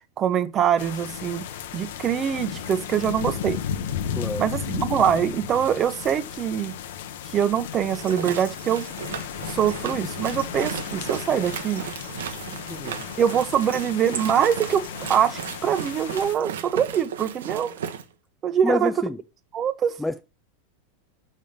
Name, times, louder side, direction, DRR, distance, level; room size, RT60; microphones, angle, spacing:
voice 1, 0.2-1.5 1.7-3.6 4.4-6.7 7.3-8.9 9.4-11.8 13.2-14.8 15.1-17.7 18.4-18.9 19.5-19.9, right 9 dB, 30° right, 0.8 m, -23 dB
sound 1, 0.8-16.4, left 9 dB, 75° left, 0.8 m, -34 dB
voice 2, 4.1-4.5 12.7-13.0 18.6-19.2 20.0-20.2, left 2 dB, 5° left, 0.4 m, -27 dB
sound 2, 7.8-18.0, right 8 dB, 85° right, 1.0 m, -35 dB
5.5 x 5.4 x 5.2 m
supercardioid pair, 130°, 0 cm